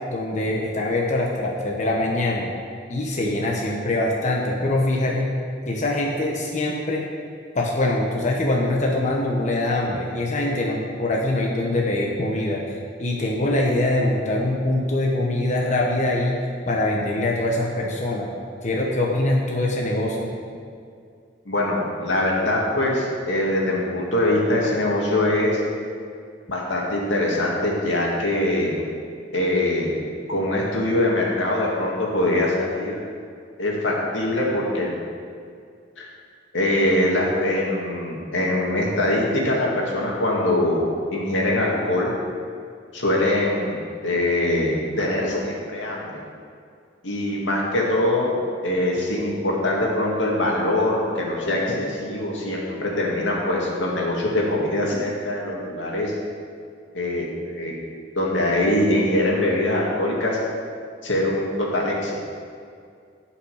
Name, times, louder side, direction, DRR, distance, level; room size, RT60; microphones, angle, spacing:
voice 1, 0.1-2.5 2.9-5.3 5.7-7.0 7.5-18.3 18.6-20.3, left 1 dB, 40° left, -2 dB, 1.2 m, -23 dB
voice 2, 21.5-25.6 26.5-28.8 29.3-30.0 30.3-33.0 33.6-34.9 36.0-36.1 36.5-42.1 42.9-46.2 47.0-48.3 48.6-56.1 56.9-57.7 58.2-60.4 61.0-62.2, left 1 dB, 90° left, -3 dB, 2.3 m, -23 dB
17.0 x 5.8 x 5.0 m, 2.3 s
head